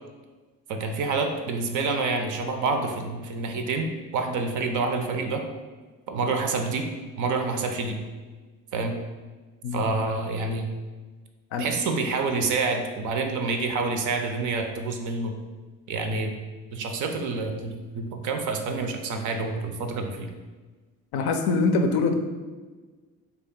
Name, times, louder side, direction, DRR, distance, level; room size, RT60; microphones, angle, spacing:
voice 1, 0.7-5.4 6.1-6.9 7.2-8.0 8.7-9.0 9.7-10.7 11.6-15.4 15.9-16.3 16.7-20.3, right 3 dB, 45° right, 5 dB, 0.5 m, -27 dB
voice 2, 21.1-22.1, left 3 dB, 55° left, 5 dB, 0.5 m, -23 dB
3.3 x 2.3 x 3.7 m, 1.3 s
figure-of-eight pair, 50°, 46 cm